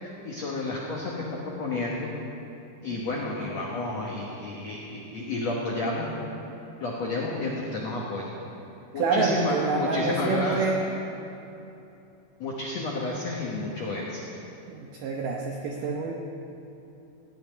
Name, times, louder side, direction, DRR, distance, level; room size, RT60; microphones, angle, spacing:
voice 1, 0.0-2.1 2.8-6.1 6.8-8.4 8.9-10.6 12.4-14.2, left 2 dB, 75° left, -3 dB, 1.5 m, -31 dB
voice 2, 2.9-3.4 9.0-10.8 14.7-16.1, right 4 dB, 80° right, 0 dB, 1.9 m, -28 dB
17.5 x 6.1 x 9.9 m, 2.8 s
omnidirectional pair, 5.2 m